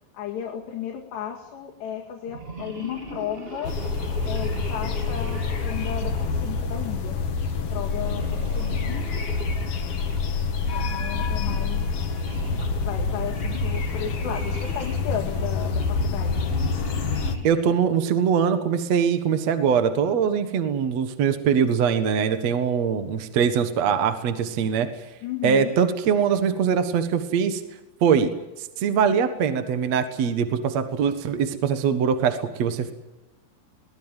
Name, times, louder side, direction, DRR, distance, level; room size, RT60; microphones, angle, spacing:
voice 1, 0.1-3.8 4.2-7.2 7.7-9.0 10.7-12.1 12.8-16.5 25.2-25.8, left 9 dB, 85° left, 0 dB, 4.4 m, -34 dB
sound 1, 2.2-7.1 7.9-10.3 10.9-17.7, right 2 dB, 15° right, 2.8 m, -40 dB
sound 2, 3.6-17.4, left 4 dB, 45° left, 2.2 m, -27 dB
voice 2, 17.4-24.9 25.4-27.6 28.0-28.3 28.8-32.9, right 7 dB, 55° right, 9 dB, 2.1 m, -22 dB
22.5 x 19.5 x 9.1 m, 1.0 s
omnidirectional pair, 4.8 m